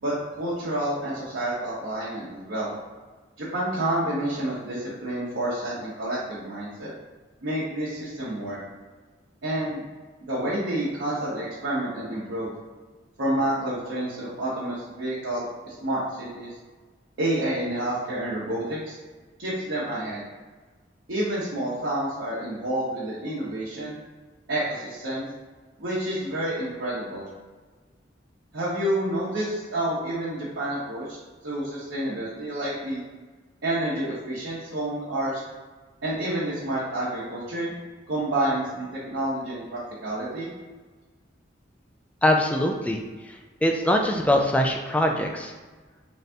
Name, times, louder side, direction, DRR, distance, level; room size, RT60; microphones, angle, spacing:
voice 1, 0.0-2.7 3.4-6.9 7.4-8.6 9.4-9.8 10.2-12.5 13.2-16.5 17.2-19.0 19.4-20.2 21.1-24.0 24.5-25.3 25.8-27.3 28.5-31.2 31.4-33.0 33.6-35.4 36.0-37.7 38.1-40.5, right 1 dB, 85° right, -8 dB, 0.9 m, -29 dB
voice 2, 42.2-45.5, left 1 dB, 5° left, 1 dB, 0.3 m, -23 dB
4.0 x 2.6 x 3.4 m, 1.4 s
head